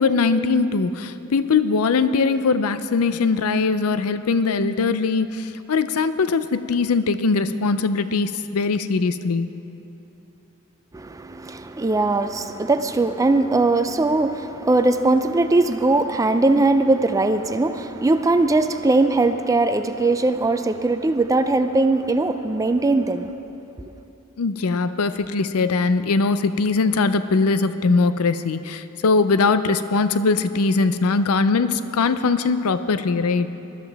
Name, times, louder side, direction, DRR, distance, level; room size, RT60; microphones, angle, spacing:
voice 1, 0.0-9.5 24.4-33.5, left 4 dB, 85° left, 12 dB, 0.5 m, -21 dB
voice 2, 10.9-23.3, right 2 dB, 15° right, 9 dB, 0.4 m, -20 dB
20.0 x 12.5 x 3.4 m, 2.9 s
head